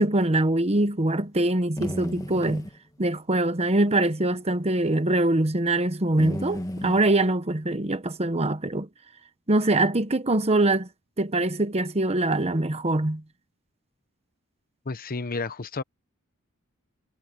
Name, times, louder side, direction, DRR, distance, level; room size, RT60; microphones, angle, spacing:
voice 1, 0.0-2.7 3.0-8.9 9.5-10.9 11.2-13.2, right 2 dB, 30° right, 1.2 m, -23 dB
sound 1, 1.4-2.8 4.1-4.4 4.8-4.9 6.2-7.1, left 1 dB, 15° left, 1.5 m, -33 dB
voice 2, 14.8-15.8, left 3 dB, 45° left, 1.0 m, -31 dB
head